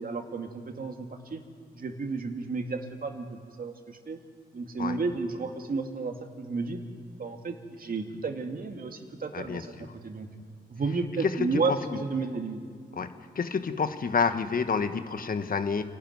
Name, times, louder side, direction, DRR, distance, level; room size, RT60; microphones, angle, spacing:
voice 1, 0.0-1.4 1.7-4.2 4.5-6.8 7.2-10.3 10.7-12.6, right 4 dB, 50° right, 4 dB, 2.4 m, -32 dB
voice 2, 9.3-9.9 11.2-11.8 12.9-15.8, left 5 dB, 50° left, 9 dB, 1.5 m, -29 dB
27.5 x 12.5 x 9.5 m, 2.1 s
supercardioid pair, 55°, 18 cm